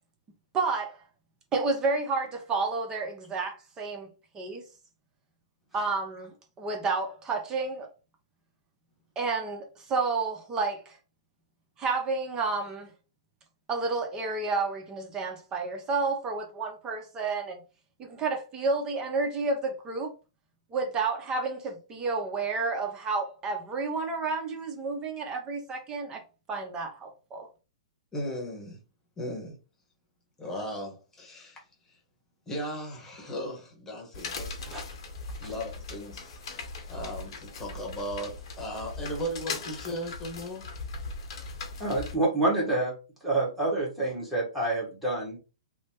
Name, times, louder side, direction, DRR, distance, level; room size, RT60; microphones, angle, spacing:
voice 1, 0.5-1.0 1.5-4.1 4.3-4.7 5.7-6.3 6.6-7.9 9.2-11.0 11.8-12.9 13.7-17.6 18.0-20.1 20.7-26.2 26.5-27.5, right 3 dB, 20° right, 0.7 m, -30 dB
voice 2, 28.1-28.8 29.2-29.6 30.4-31.9 32.5-35.0 35.4-36.4 36.9-40.7, equal, 15° left, 1.2 m, -37 dB
sound 1, 34.1-42.1, left 3 dB, 55° left, 0.8 m, -39 dB
voice 3, 41.8-42.9 43.2-45.4, right 2 dB, 5° right, 1.4 m, -27 dB
3.1 x 2.0 x 2.8 m
hypercardioid pair, 120°, 3 cm